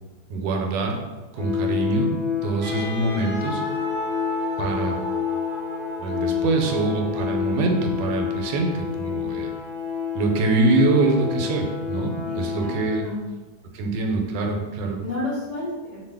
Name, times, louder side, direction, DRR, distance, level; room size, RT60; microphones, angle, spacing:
voice 1, 0.3-1.0 1.3-2.1 2.4-3.6 4.6-5.0 6.0-9.5 10.1-13.0 13.7-15.0, right 3 dB, 80° right, 2 dB, 1.2 m, -24 dB
sound 1, 1.4-13.0, left 8 dB, 75° left, 1.2 m, -29 dB
Wind instrument woodwind instrument, 2.6-6.7, equal, 35° right, 0.8 m, -33 dB
voice 2, 12.3-13.2 14.0-14.2 15.0-16.0, left 2 dB, 50° left, -10 dB, 0.6 m, -32 dB
2.7 x 2.5 x 3.4 m, 1.2 s
omnidirectional pair, 1.9 m